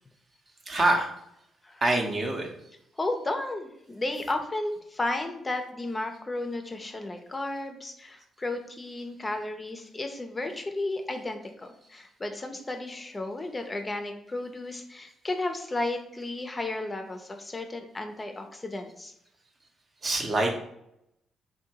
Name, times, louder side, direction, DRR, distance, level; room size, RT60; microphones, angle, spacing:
voice 1, 0.7-1.1 1.8-2.5 4.2-4.3 20.0-20.5, right 2 dB, 40° right, 3 dB, 0.6 m, -25 dB
voice 2, 3.0-19.1, left 2 dB, 25° left, 5 dB, 0.4 m, -33 dB
2.6 x 2.2 x 2.8 m, 0.78 s
hypercardioid pair, 45°, 0 cm